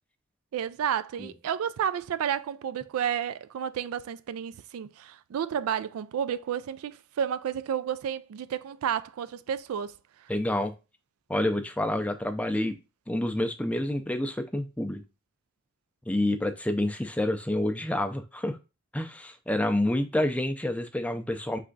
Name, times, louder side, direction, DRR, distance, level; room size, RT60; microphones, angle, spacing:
voice 1, 0.5-10.0, right 8 dB, 90° right, 0.3 m, -31 dB
voice 2, 10.3-10.7 11.3-12.8 13.1-15.0 16.1-18.6 18.9-21.6, left 1 dB, 5° left, 0.4 m, -28 dB
3.6 x 3.3 x 3.8 m
head